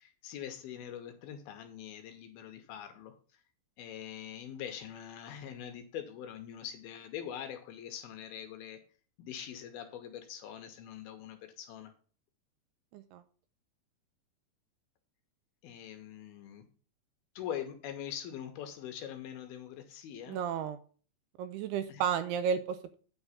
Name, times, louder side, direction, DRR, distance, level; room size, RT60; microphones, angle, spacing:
voice 1, 0.0-3.4 3.8-8.8 9.2-11.9 15.6-16.6 17.4-20.4 21.9-22.0, left 9 dB, 75° left, 6 dB, 2.5 m, -43 dB
voice 2, 20.3-20.8 21.4-23.0, right 7 dB, 80° right, 11 dB, 2.4 m, -33 dB
8.9 x 3.9 x 7.0 m, 0.41 s
omnidirectional pair, 5.0 m